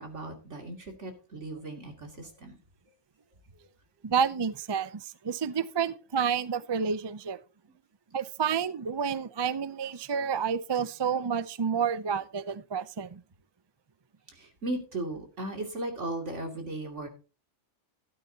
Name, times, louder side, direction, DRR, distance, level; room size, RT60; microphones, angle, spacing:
voice 1, 0.0-2.6 14.3-17.1, right 2 dB, 80° right, 3 dB, 3.0 m, -37 dB
voice 2, 4.0-7.4 8.1-13.2, right 7 dB, 35° right, 15 dB, 0.4 m, -29 dB
13.0 x 12.0 x 2.8 m, 0.33 s
omnidirectional pair, 1.2 m